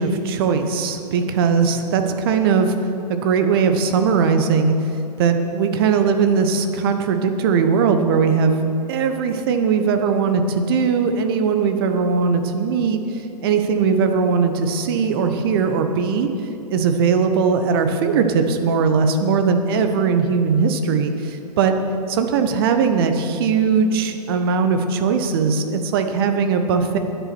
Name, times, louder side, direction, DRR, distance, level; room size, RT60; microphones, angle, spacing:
voice 1, 0.0-2.7 3.1-4.7 5.2-8.6 8.9-13.0 13.4-16.3 16.7-21.7 22.1-27.0, right 5 dB, 35° right, 7 dB, 1.1 m, -19 dB
12.5 x 10.5 x 6.2 m, 2.8 s
figure-of-eight pair, 115°, 21 cm